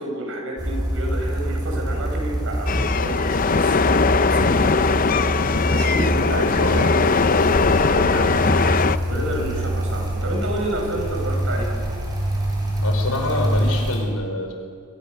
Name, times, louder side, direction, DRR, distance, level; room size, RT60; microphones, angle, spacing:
voice 1, 0.0-3.8 4.3-7.0 7.7-11.7, right 1 dB, 60° right, 1 dB, 7.4 m, -30 dB
sound 1, 0.6-14.0, equal, 20° right, 6.8 m, -25 dB
sound 2, 2.7-9.0, left 4 dB, 40° left, 0.6 m, -20 dB
voice 2, 6.4-6.8 9.1-9.3 12.8-14.5, left 2 dB, 85° left, 3 dB, 5.3 m, -27 dB
26.5 x 25.0 x 6.8 m, 2.1 s
head